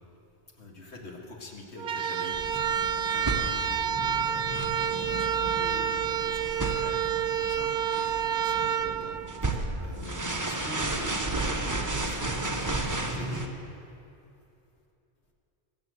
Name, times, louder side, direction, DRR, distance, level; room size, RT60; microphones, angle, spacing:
voice 1, 0.6-9.2 9.5-13.5, left 2 dB, 65° left, 1 dB, 2.1 m, -45 dB
sound 1, 1.8-9.9, right 8 dB, 55° right, 0.7 m, -29 dB
sound 2, 2.3-13.5, right 2 dB, 15° right, 1.0 m, -33 dB
22.0 x 7.3 x 7.9 m, 2.7 s
omnidirectional pair, 1.2 m